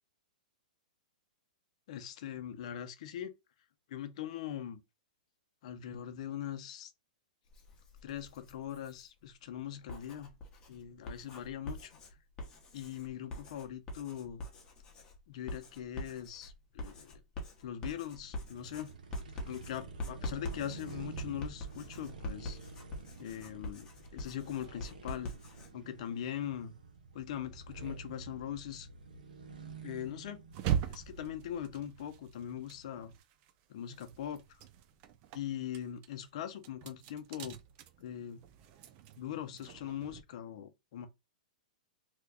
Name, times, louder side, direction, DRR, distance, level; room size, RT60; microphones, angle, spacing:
voice 1, 1.9-3.3 3.9-4.8 5.6-6.9 8.0-10.3 10.7-12.0 12.7-14.4 15.3-17.2 17.6-18.9 19.5-22.6 23.2-25.3 25.7-26.7 27.1-28.9 29.8-30.4 30.8-33.1 33.7-34.4 35.3-37.6 38.0-38.4 39.2-41.1, left 10 dB, 50° left, 0.6 m, -41 dB
Writing, 7.5-9.1 9.7-25.7, left 1 dB, 20° left, 0.9 m, -45 dB
sound 1, 18.1-33.2, right 4 dB, 85° right, 0.9 m, -50 dB
sound 2, 30.5-33.5 33.8-40.2, right 9 dB, 30° right, 0.4 m, -40 dB
2.9 x 2.3 x 3.4 m
hypercardioid pair, 150°, 4 cm